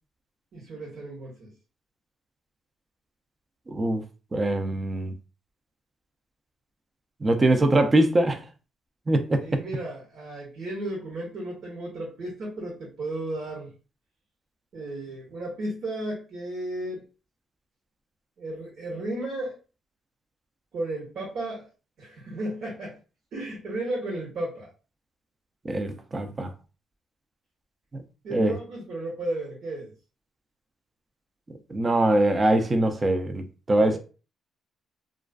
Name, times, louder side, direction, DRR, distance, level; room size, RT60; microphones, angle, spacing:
voice 1, 0.5-1.5 9.4-13.7 14.7-17.0 18.4-19.5 20.7-21.7 22.0-23.0 23.3-24.7 28.2-29.9 33.8-34.0, right 1 dB, 65° right, 1.0 m, -34 dB
voice 2, 3.7-4.0 4.3-5.1 7.2-8.4 9.1-9.6 25.6-26.5 27.9-28.0 28.3-28.5 31.7-34.0, right 1 dB, 30° right, 0.4 m, -23 dB
2.4 x 2.3 x 2.3 m
cardioid pair, 90°, 0 cm